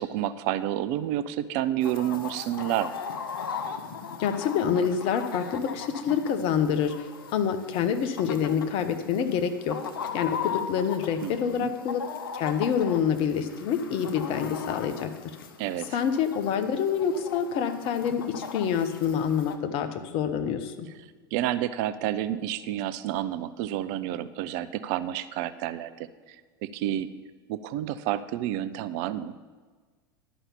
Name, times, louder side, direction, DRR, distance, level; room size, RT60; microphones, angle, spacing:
voice 1, 0.0-3.0 11.2-11.7 15.6-16.0 21.3-26.1 26.6-27.1 27.5-29.3, right 12 dB, 55° right, 14 dB, 0.5 m, -29 dB
Chicken rooster, 1.8-19.6, left 6 dB, 80° left, 0.9 m, -38 dB
voice 2, 4.2-9.8 10.1-12.0 12.3-15.1 15.9-20.9, left 7 dB, 50° left, 9 dB, 1.0 m, -27 dB
11.0 x 5.6 x 7.1 m, 1.4 s
hypercardioid pair, 85°, 12 cm